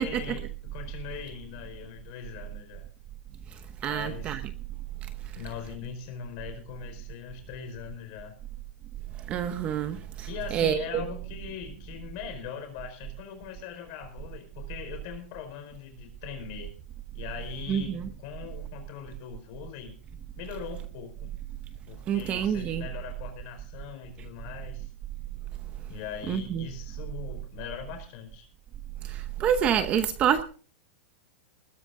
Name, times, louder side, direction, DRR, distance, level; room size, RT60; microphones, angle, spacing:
voice 1, 0.0-2.9 3.9-4.4 5.3-8.3 10.3-16.7 17.1-19.9 20.4-21.3 21.9-24.9 25.9-28.5, left 8 dB, 35° left, 6 dB, 4.8 m, -41 dB
voice 2, 3.8-4.4 9.3-11.0 17.7-18.1 22.1-22.8 26.3-26.6 29.0-30.4, right 9 dB, 20° right, 10 dB, 0.8 m, -27 dB
20.5 x 11.0 x 3.8 m, 0.40 s
supercardioid pair, 175°, 6 cm